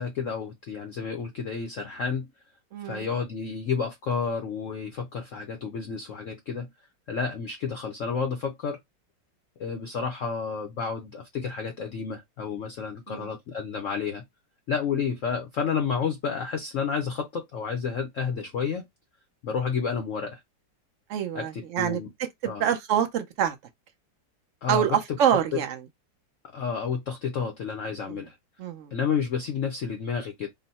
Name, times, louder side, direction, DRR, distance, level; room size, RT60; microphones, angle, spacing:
voice 1, 0.0-2.3 2.8-6.7 7.1-8.8 9.6-14.2 14.7-18.8 19.4-20.4 21.3-22.1 22.4-22.6 24.6-25.2 25.5-25.6 26.5-28.4 28.9-30.5, left 6 dB, 60° left, 0.8 m, -30 dB
voice 2, 2.7-3.1 13.1-13.3 21.1-22.0 22.4-23.6 24.7-25.8 28.1-28.2 28.6-28.9, right 9 dB, 75° right, 0.7 m, -26 dB
3.8 x 2.1 x 4.0 m
omnidirectional pair, 2.0 m